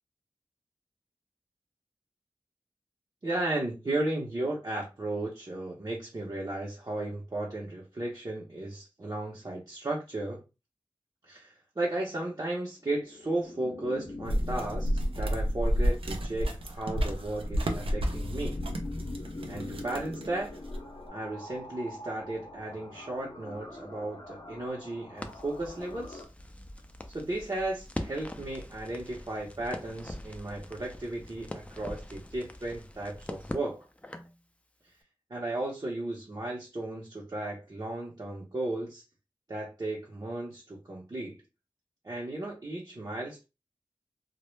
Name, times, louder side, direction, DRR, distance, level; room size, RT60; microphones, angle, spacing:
voice 1, 3.2-10.4 11.3-18.6 19.5-20.5 21.1-26.2 27.1-33.8 35.3-39.0 39.5-41.4 42.0-43.4, right 2 dB, 45° right, -3 dB, 0.6 m, -35 dB
sound 1, 12.8-26.3, left 2 dB, 55° left, 0.6 m, -43 dB
sound 2, 14.2-21.0, equal, 85° right, 0.4 m, -31 dB
Crackle, 25.2-34.4, left 1 dB, 15° left, 0.3 m, -43 dB
2.0 x 2.0 x 3.0 m, 0.28 s
wide cardioid pair, 60°, 9 cm